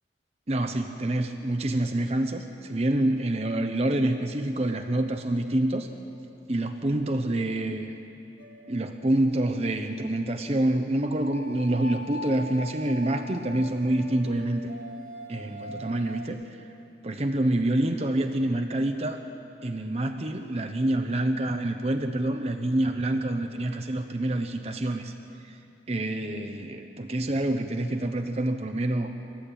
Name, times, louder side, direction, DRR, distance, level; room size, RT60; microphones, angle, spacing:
voice 1, 0.5-5.9 6.5-7.9 8.7-14.6 15.3-16.4 17.0-19.2 19.6-25.1 25.4-25.5 25.9-29.1, right 1 dB, 35° right, 6 dB, 0.9 m, -27 dB
sound 1, 8.4-9.1 11.1-16.3, left 1 dB, 90° right, 1.7 m, -42 dB
25.5 x 13.5 x 9.0 m, 2.7 s
head